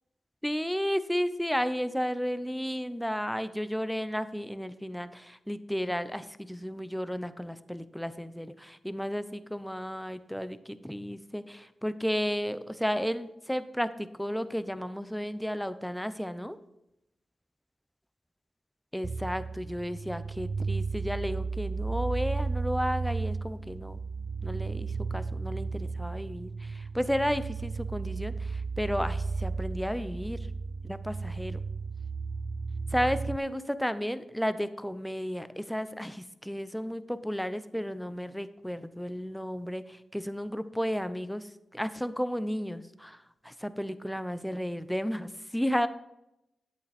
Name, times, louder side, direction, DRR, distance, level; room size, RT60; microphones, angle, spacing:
voice 1, 0.4-16.6 18.9-24.0 24.4-30.5 30.8-31.6 32.9-45.9, equal, 5° left, 13 dB, 0.8 m, -33 dB
sound 1, 19.0-33.4, right 4 dB, 50° right, 0.4 m, -34 dB
10.5 x 8.4 x 4.4 m, 0.88 s
cardioid pair, 50°, 0 cm